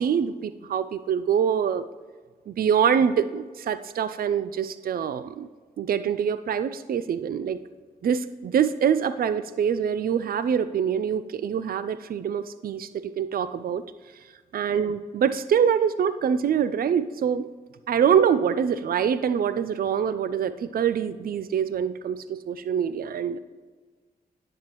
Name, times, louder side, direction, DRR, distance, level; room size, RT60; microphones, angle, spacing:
voice 1, 0.0-1.8 2.5-5.5 5.8-7.6 8.0-13.8 14.5-17.5 17.9-23.4, right 8 dB, 65° right, 13 dB, 0.4 m, -25 dB
10.0 x 8.0 x 3.0 m, 1.5 s
cardioid pair, 55°, 16 cm